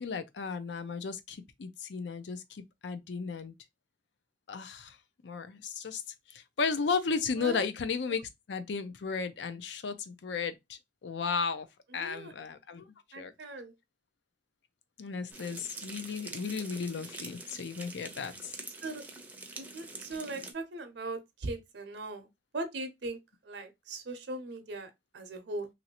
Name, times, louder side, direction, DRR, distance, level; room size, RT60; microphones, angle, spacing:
voice 1, 0.0-3.5 4.5-5.0 5.2-6.0 6.3-11.7 11.9-12.8 13.2-13.3 15.0-18.5, left 5 dB, 75° left, 0.5 m, -34 dB
voice 2, 11.9-12.3 13.1-13.7 18.8-19.0 19.6-22.3 22.5-23.2 23.4-25.7, right 2 dB, 80° right, 0.6 m, -39 dB
sound 1, 15.3-20.5, right 2 dB, 10° right, 0.5 m, -45 dB
3.0 x 2.6 x 2.8 m
head